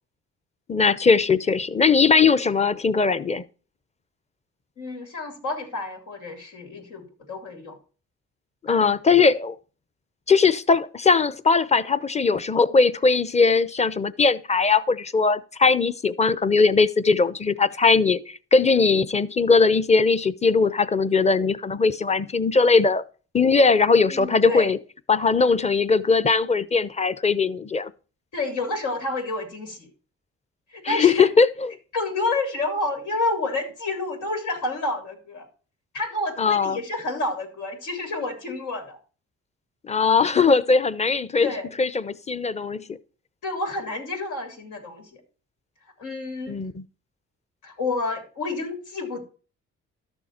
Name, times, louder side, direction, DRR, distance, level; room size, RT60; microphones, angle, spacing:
voice 1, 0.7-3.4 8.6-9.6 10.3-23.0 23.3-24.8 25.1-27.9 30.8-31.7 36.4-36.8 39.9-41.5 41.8-42.8 46.5-46.7, left 4 dB, 20° left, 0.7 m, -20 dB
voice 2, 4.8-7.8 8.7-9.0 24.1-24.7 28.3-29.9 30.7-31.3 31.9-35.5 35.9-39.0 41.4-41.7 43.4-45.2 46.0-46.6 47.6-49.2, left 2 dB, 90° left, 3.5 m, -29 dB
12.5 x 6.9 x 4.3 m
cardioid pair, 90°, 30 cm